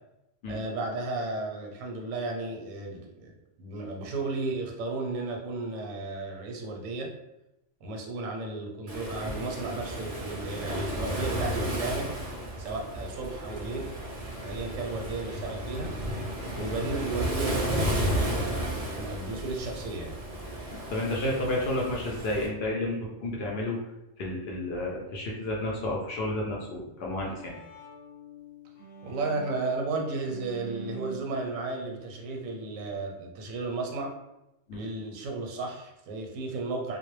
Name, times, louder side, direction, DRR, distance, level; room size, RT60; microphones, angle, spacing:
voice 1, 0.5-3.3 3.6-7.1 7.8-12.1 12.6-13.9 14.4-15.9 16.5-20.2 29.0-34.1 34.7-37.0, right 3 dB, 90° right, 1 dB, 1.0 m, -34 dB
Waves surf, 8.9-22.5, equal, 55° right, 0.4 m, -33 dB
voice 2, 20.9-23.8 24.2-27.5 34.7-34.8, left 1 dB, 65° left, -3 dB, 0.7 m, -31 dB
Bowed string instrument, 26.9-33.0, right 4 dB, 90° left, 1.0 m, -45 dB
2.2 x 2.0 x 3.0 m, 0.91 s
omnidirectional pair, 1.3 m